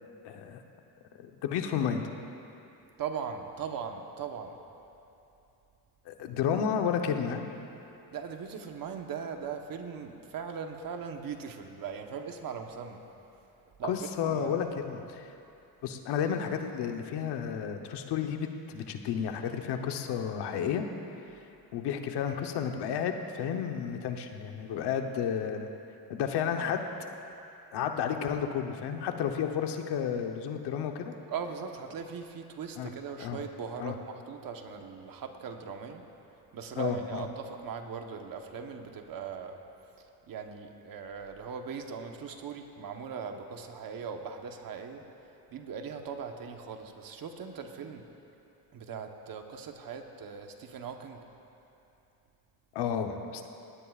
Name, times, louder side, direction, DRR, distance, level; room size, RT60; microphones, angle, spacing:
voice 1, 0.2-0.6 1.2-2.0 6.1-7.4 13.8-15.3 15.8-20.8 21.7-25.7 26.1-26.9 27.7-31.1 32.8-32.9 33.2-33.4 33.8-34.0 36.8-37.3 52.7-53.5, left 8 dB, 85° left, 5 dB, 1.1 m, -32 dB
voice 2, 3.0-4.6 8.1-13.0 13.8-14.6 31.3-36.0 36.5-39.6 40.3-45.0 45.5-48.1 48.7-51.2, right 6 dB, 55° right, 4 dB, 1.2 m, -39 dB
20.0 x 17.0 x 2.5 m, 2.8 s
cardioid pair, 115°, 39 cm